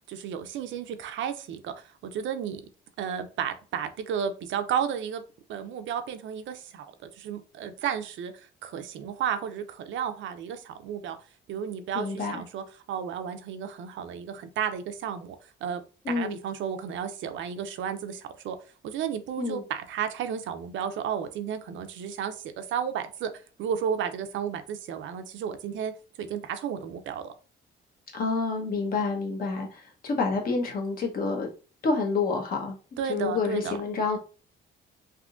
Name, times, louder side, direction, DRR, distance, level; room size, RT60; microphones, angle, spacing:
voice 1, 0.1-2.6 3.0-5.2 5.5-6.9 7.2-8.3 8.6-11.2 11.5-15.8 16.1-18.6 18.8-23.3 23.6-25.9 26.2-27.3 33.0-33.8, right 8 dB, 70° right, 0.5 m, -33 dB
voice 2, 11.9-12.4 16.0-16.3 19.4-19.6 28.1-31.5 31.8-34.2, left 4 dB, 45° left, 1.0 m, -28 dB
3.6 x 2.7 x 2.4 m
cardioid pair, 135°, 20 cm